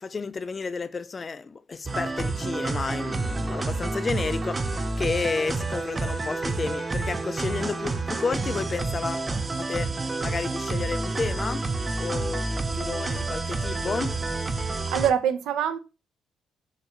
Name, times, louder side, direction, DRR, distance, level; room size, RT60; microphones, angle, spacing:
voice 1, 0.0-9.3 9.6-11.7 12.0-14.1, left 4 dB, 35° left, 0.3 m, -31 dB
sound 1, 1.8-15.1, right 3 dB, 25° right, 0.5 m, -29 dB
voice 2, 14.5-15.8, right 8 dB, 85° right, 0.6 m, -25 dB
6.5 x 2.6 x 3.0 m
cardioid pair, 90°, 0 cm